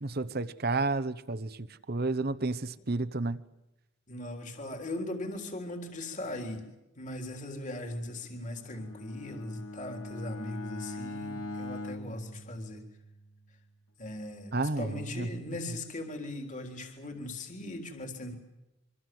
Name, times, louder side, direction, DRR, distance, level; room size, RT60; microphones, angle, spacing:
voice 1, 0.0-3.4 14.5-15.4, right 3 dB, 45° right, 1.0 m, -31 dB
voice 2, 4.1-6.6 7.0-12.8 14.0-18.4, left 1 dB, 35° left, 3.8 m, -39 dB
Bowed string instrument, 8.6-13.2, left 2 dB, 90° left, 3.0 m, -41 dB
26.5 x 25.0 x 7.8 m
head